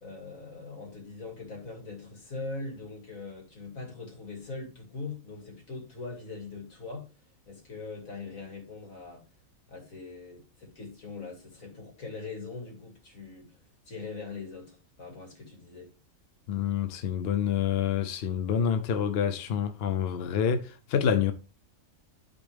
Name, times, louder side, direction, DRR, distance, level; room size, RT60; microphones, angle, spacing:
voice 1, 0.0-7.1 7.5-9.3 9.7-13.6 13.9-15.9, left 3 dB, 80° left, 2.7 m, -41 dB
voice 2, 16.5-21.3, left 8 dB, 60° left, 0.7 m, -27 dB
12.0 x 4.2 x 3.3 m
omnidirectional pair, 1.4 m